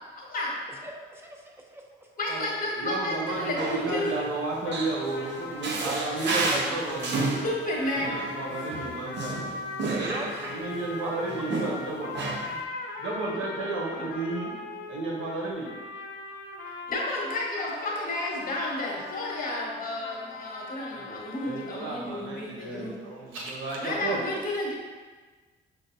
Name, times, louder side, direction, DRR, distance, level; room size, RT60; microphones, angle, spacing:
voice 1, 0.2-0.5 2.2-4.1 7.4-8.2 16.9-22.9 23.8-24.7, left 1 dB, 45° left, -2 dB, 1.1 m, -31 dB
voice 2, 0.7-2.1 5.8-5.9 6.5-7.0 10.0-10.4 11.0-11.2 11.7-11.8, right 1 dB, 10° right, 0 dB, 0.6 m, -39 dB
voice 3, 2.8-7.3 7.9-9.3 10.6-12.1 12.5-12.6 13.0-14.5 14.9-15.7 20.9-24.2, right 2 dB, 80° right, -3 dB, 1.0 m, -33 dB
Male speech man speaking, 3.3-10.8 11.3-12.6, right 3 dB, 60° right, 0.6 m, -32 dB
sound 1, 4.6-21.8, left 3 dB, 80° left, 0.6 m, -39 dB
6.2 x 2.2 x 2.7 m, 1.4 s
cardioid pair, 90°, 20 cm